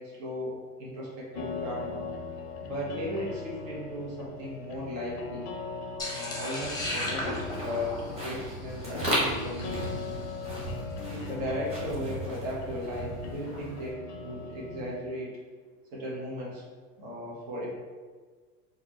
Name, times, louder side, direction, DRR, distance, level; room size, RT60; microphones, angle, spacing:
voice 1, 0.0-2.1 2.6-5.5 6.1-10.0 11.1-15.3 15.9-16.6 17.0-17.7, equal, 55° right, -5 dB, 1.4 m, -36 dB
sound 1, 1.4-15.0, left 4 dB, 35° left, 0.5 m, -40 dB
sound 2, 6.0-10.3, left 1 dB, 10° left, 0.8 m, -37 dB
sound 3, 6.6-13.9, equal, 10° right, 1.4 m, -36 dB
3.7 x 2.6 x 3.0 m, 1.5 s
hypercardioid pair, 105°, 47 cm